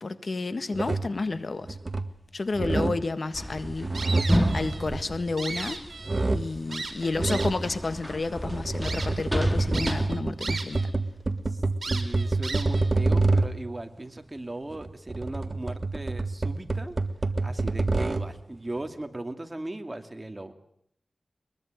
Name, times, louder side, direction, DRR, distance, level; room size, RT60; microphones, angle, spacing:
voice 1, 0.0-1.8 2.3-5.8 6.3-10.9, left 3 dB, 60° left, 11 dB, 1.7 m, -31 dB
sound 1, 0.7-1.2 1.7-2.2 2.5-3.1 3.6-5.7 6.0-6.6 7.1-7.7 8.3-13.7 14.7-18.4, right 2 dB, 40° right, 1.7 m, -28 dB
sound 2, 3.3-6.3 6.8-10.1, equal, ahead, 3.3 m, -29 dB
sound 3, 3.9-4.9 5.2-6.3 6.7-7.7 8.3-8.4 8.8-9.1 9.7-10.9 11.2-11.3 11.8-12.9, right 3 dB, 60° right, 4.4 m, -36 dB
voice 2, 11.5-17.0 17.4-20.5, right 1 dB, 25° right, 7 dB, 2.6 m, -38 dB
22.5 x 22.0 x 9.1 m, 0.69 s
wide cardioid pair, 70°, 0 cm